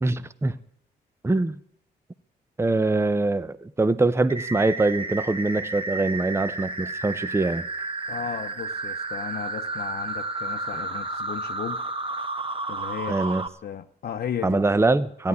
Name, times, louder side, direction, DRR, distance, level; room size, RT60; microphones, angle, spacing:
voice 1, 0.0-0.6 1.2-1.6 2.6-7.7 13.1-13.4 14.4-15.3, right 2 dB, 15° right, 0.7 m, -23 dB
sound 1, 4.3-13.5, right 3 dB, 30° right, 1.6 m, -32 dB
voice 2, 8.1-11.8 12.7-13.4 13.6-14.6 15.2-15.3, left 8 dB, 60° left, 0.8 m, -35 dB
14.0 x 10.5 x 9.6 m
cardioid pair, 75°, 18 cm